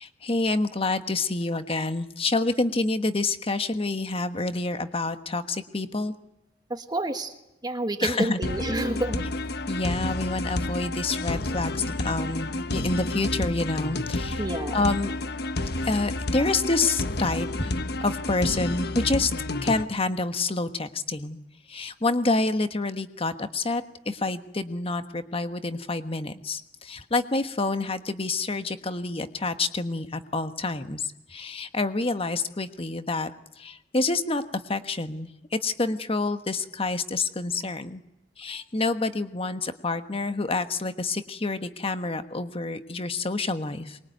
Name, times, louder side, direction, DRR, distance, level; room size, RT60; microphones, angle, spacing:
voice 1, 0.0-6.1 8.0-8.4 9.7-14.4 14.7-15.1 15.8-17.7 18.0-19.3 19.6-21.4 21.7-33.3 33.6-38.0 38.4-44.0, left 3 dB, 30° left, 9 dB, 1.3 m, -28 dB
voice 2, 6.7-7.3 7.6-9.3 14.4-14.8, right 1 dB, 25° right, 7 dB, 1.5 m, -29 dB
sound 1, 8.4-19.8, left 2 dB, 60° left, 1.2 m, -30 dB
23.5 x 22.0 x 9.3 m, 0.91 s
head